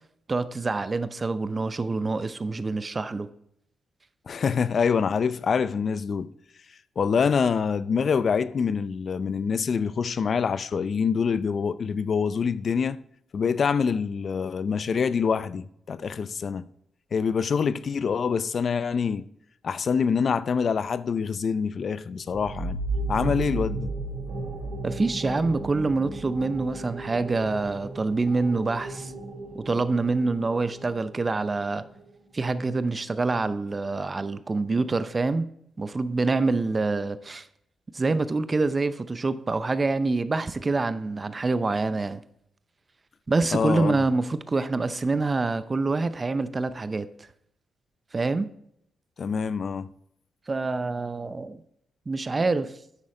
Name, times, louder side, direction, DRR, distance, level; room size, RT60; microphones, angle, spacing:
voice 1, 0.3-3.3 24.8-29.1 29.5-31.8 32.3-35.5 35.8-37.5 37.9-42.2 43.3-47.1 48.1-48.5 50.5-51.6 52.1-52.7, right 3 dB, 35° right, 0.6 m, -26 dB
voice 2, 4.3-6.3 7.0-13.0 13.3-16.7 17.1-19.3 19.6-22.8 23.1-23.9 43.5-44.0 49.2-49.9, left 6 dB, 55° left, 0.5 m, -25 dB
sound 1, 22.3-31.7, right 2 dB, 60° right, 2.7 m, -34 dB
9.8 x 6.3 x 3.8 m
cardioid pair, 65°, 0 cm